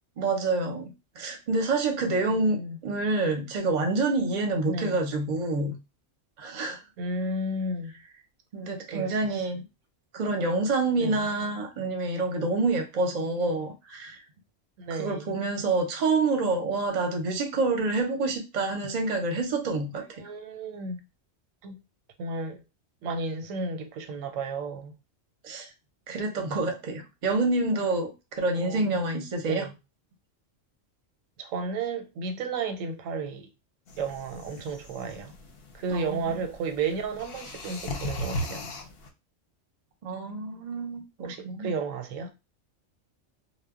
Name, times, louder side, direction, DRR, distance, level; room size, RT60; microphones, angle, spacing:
voice 1, 0.2-2.6 2.8-5.8 6.4-6.8 8.5-9.6 10.1-14.2 14.9-20.3 25.4-25.7 26.1-28.1 28.4-29.7 35.9-36.4 40.0-41.7, right 3 dB, 45° right, 0.6 m, -27 dB
voice 2, 2.3-2.8 4.7-5.0 7.0-7.9 8.9-9.5 11.0-11.2 14.8-15.3 20.0-21.0 21.6-21.8 22.2-22.6 23.0-24.9 28.5-29.0 29.4-29.8 31.4-33.5 34.0-35.3 35.7-38.6 41.2-42.3, right 3 dB, 90° right, 1.0 m, -33 dB
sound 1, 33.9-39.1, left 1 dB, 60° left, 0.7 m, -38 dB
2.2 x 2.0 x 3.5 m
omnidirectional pair, 1.3 m